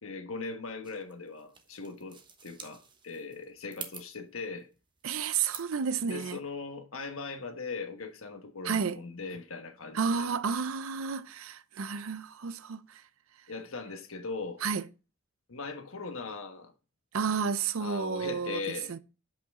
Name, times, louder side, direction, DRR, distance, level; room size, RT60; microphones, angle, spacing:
voice 1, 0.0-4.7 6.0-10.3 13.5-14.6 15.5-16.7 17.8-18.9, left 4 dB, 70° left, 1.3 m, -39 dB
sound 1, 0.8-5.9, right 6 dB, 20° right, 1.1 m, -48 dB
voice 2, 5.0-6.4 8.6-9.0 9.9-13.0 14.6-14.8 17.1-19.0, right 6 dB, 65° right, 0.5 m, -31 dB
7.8 x 5.7 x 3.7 m
head